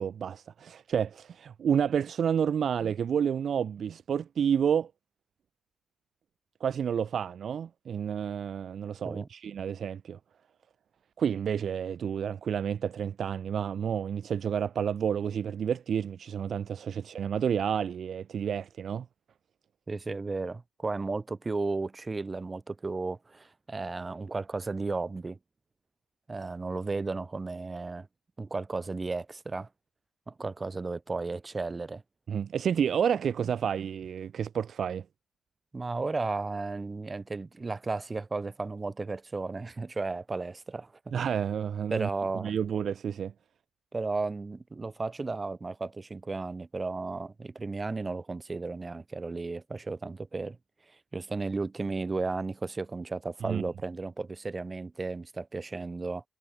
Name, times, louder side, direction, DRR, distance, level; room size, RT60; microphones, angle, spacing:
voice 1, 0.0-4.9 6.6-10.2 11.2-19.1 32.3-35.0 41.1-42.1 42.3-43.3 53.4-53.6, right 8 dB, 55° right, 2.1 m, -30 dB
voice 2, 19.9-25.4 26.3-28.1 28.4-29.7 30.3-32.0 35.7-41.1 41.9-42.5 43.9-50.6 51.1-56.2, right 3 dB, 25° right, 6.7 m, -34 dB
cardioid pair, 90°, 0 cm